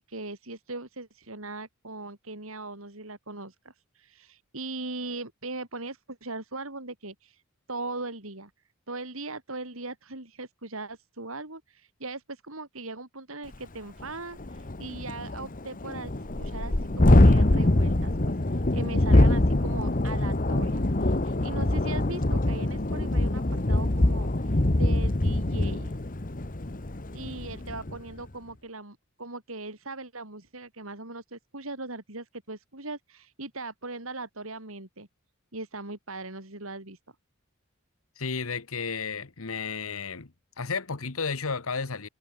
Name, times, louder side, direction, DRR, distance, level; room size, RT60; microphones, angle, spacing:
voice 1, 0.0-7.4 7.7-8.5 8.9-16.1 16.4-18.1 18.5-26.0 27.1-35.1 35.5-37.0, right 2 dB, 70° right, 4.9 m, -39 dB
Thunderstorm, 13.5-13.6 14.0-14.1 14.4-28.0, left 1 dB, 40° left, 1.3 m, -24 dB
voice 2, 38.2-40.3 40.6-42.1, left 5 dB, 75° left, 1.3 m, -32 dB
head